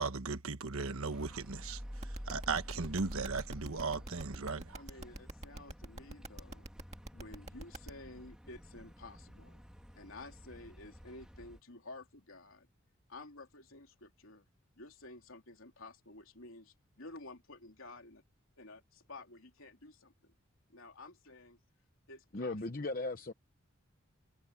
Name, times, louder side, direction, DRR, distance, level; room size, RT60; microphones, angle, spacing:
voice 1, 0.0-4.8, right 4 dB, 85° right, 1.3 m, -37 dB
sound 1, 1.1-11.6, equal, 5° right, 2.7 m, -50 dB
sound 2, 2.0-7.9, right 1 dB, 30° right, 2.1 m, -45 dB
voice 2, 4.7-6.7 7.1-9.6 9.9-12.7 13.1-14.5 14.8-18.2 18.6-20.3 20.7-21.6 22.1-22.9, left 2 dB, 75° left, 3.3 m, -52 dB
voice 3, 22.3-23.3, left 2 dB, 40° left, 0.9 m, -37 dB
head